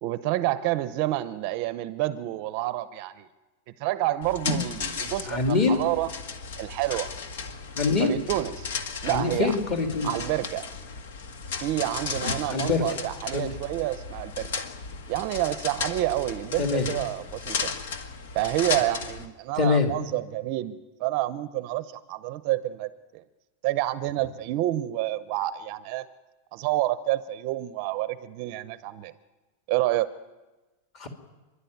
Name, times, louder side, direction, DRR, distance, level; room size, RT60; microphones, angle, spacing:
voice 1, 0.0-3.3 3.8-6.1 6.6-7.1 8.0-8.7 9.0-9.5 10.0-10.7 11.6-14.6 15.1-17.7 18.3-23.2 23.6-26.1 26.5-29.1 29.7-30.1, right 15 dB, 35° right, 0.6 m, -28 dB
sound 1, 4.2-19.2, left 5 dB, 70° left, 1.9 m, -35 dB
voice 2, 5.3-5.8 7.7-8.1 9.0-10.1 12.5-13.0 13.3-13.5 16.6-16.9 19.6-19.9 30.9-31.1, left 4 dB, 30° left, 2.5 m, -24 dB
28.5 x 11.5 x 9.4 m
supercardioid pair, 175°, 0 cm